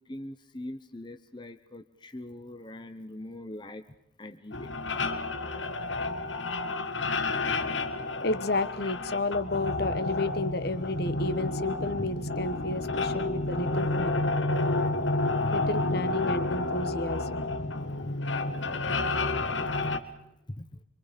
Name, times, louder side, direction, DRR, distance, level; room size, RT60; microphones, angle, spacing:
voice 1, 0.1-3.8 4.2-4.8 18.0-18.1 18.5-18.6 18.8-19.0 19.7-19.9 20.5-20.7, left 1 dB, 25° left, 8 dB, 0.9 m, -42 dB
sound 1, 4.5-20.0, left 2 dB, 75° left, 1.7 m, -30 dB
voice 2, 8.2-14.1 15.5-17.4, left 2 dB, 55° left, 11 dB, 1.3 m, -31 dB
26.0 x 25.5 x 5.3 m, 0.87 s
head